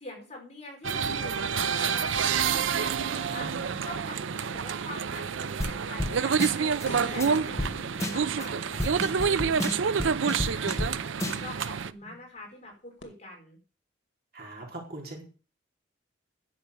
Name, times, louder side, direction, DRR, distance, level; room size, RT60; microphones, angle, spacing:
voice 1, 0.0-3.6 3.8-6.8 7.1-13.6, left 2 dB, 35° left, 0 dB, 4.9 m, -45 dB
sound 1, 0.8-11.9, right 6 dB, 80° right, 0.5 m, -28 dB
voice 2, 3.2-3.9 12.1-12.2 14.3-15.2, right 2 dB, 50° right, 0 dB, 4.1 m, -42 dB
sound 2, 5.6-5.7 6.0-6.1 6.4-6.9 7.2-7.3 7.6-7.7 8.0-8.5 8.8-10.9 11.2-11.7, left 1 dB, 15° left, 1.3 m, -31 dB
sound 3, 6.8-10.2 13.0-13.1, left 1 dB, 75° left, 2.4 m, -44 dB
10.5 x 7.0 x 6.9 m, 0.35 s
head